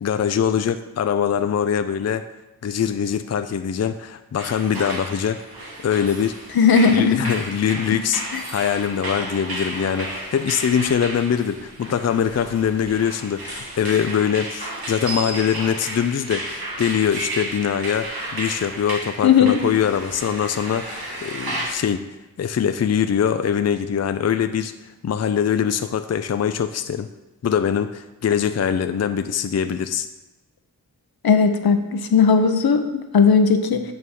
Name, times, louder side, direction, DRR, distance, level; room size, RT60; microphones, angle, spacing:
voice 1, 0.0-2.2 2.6-5.4 5.8-6.3 6.9-22.1 22.4-24.7 25.0-27.1 27.4-30.1, left 8 dB, 45° left, 9 dB, 0.5 m, -23 dB
sound 1, 4.4-21.7, right 2 dB, 90° right, 1.4 m, -33 dB
voice 2, 6.6-7.2 19.2-19.6 31.2-33.8, left 6 dB, 80° left, 7 dB, 0.8 m, -16 dB
9.2 x 3.6 x 6.4 m, 1.1 s
cardioid pair, 45°, 36 cm